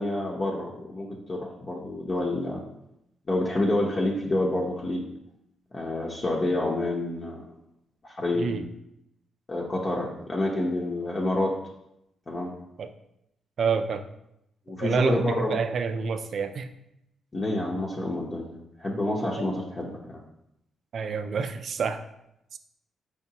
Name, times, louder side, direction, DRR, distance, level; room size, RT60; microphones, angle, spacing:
voice 1, 0.0-2.6 3.3-5.0 5.7-7.4 8.0-8.5 9.5-11.6 12.3-12.5 14.7-15.6 17.3-20.2, left 2 dB, 35° left, -2 dB, 0.7 m, -28 dB
voice 2, 8.3-8.6 12.8-12.9 13.6-14.0 14.8-16.7 20.9-22.0 22.5-22.6, right 5 dB, 60° right, 8 dB, 0.4 m, -28 dB
4.8 x 3.5 x 2.8 m, 0.82 s
cardioid pair, 80°, 0 cm